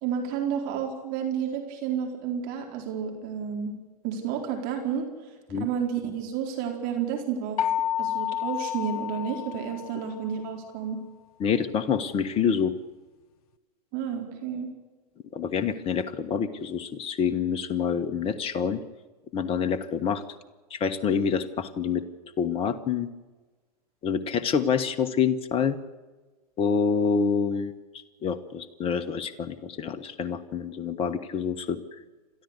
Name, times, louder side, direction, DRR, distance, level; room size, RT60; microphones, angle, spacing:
voice 1, 0.0-3.8 4.0-5.1 5.6-7.6 8.0-11.0 13.9-14.7, right 7 dB, 45° right, 3 dB, 4.3 m, -31 dB
sound 1, 7.6-10.4, left 10 dB, 65° left, 0.9 m, -30 dB
voice 2, 11.4-12.7 15.3-18.8 19.3-20.2 20.7-22.0 22.4-23.1 24.0-25.8 26.6-27.7 28.2-31.8, left 6 dB, 25° left, 8 dB, 1.3 m, -27 dB
29.5 x 13.5 x 8.2 m, 1.3 s
hypercardioid pair, 105°, 21 cm